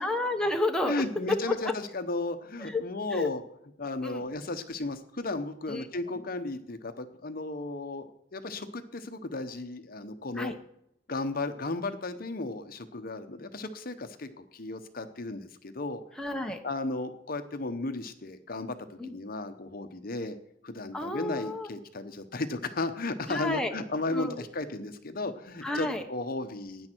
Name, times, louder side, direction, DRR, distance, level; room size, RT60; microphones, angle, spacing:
voice 1, 0.0-1.7 2.6-2.8 3.1-3.3 4.0-4.3 5.7-5.9 10.3-10.5 16.2-16.6 19.0-19.1 20.9-21.7 23.3-23.8 24.1-24.4 25.6-26.0, left 2 dB, 5° left, 3 dB, 0.9 m, -31 dB
voice 2, 0.8-3.4 3.8-10.5 11.1-16.0 16.6-18.8 19.1-20.4 20.6-26.9, left 2 dB, 50° left, 9 dB, 0.9 m, -34 dB
16.0 x 9.8 x 4.5 m, 0.77 s
head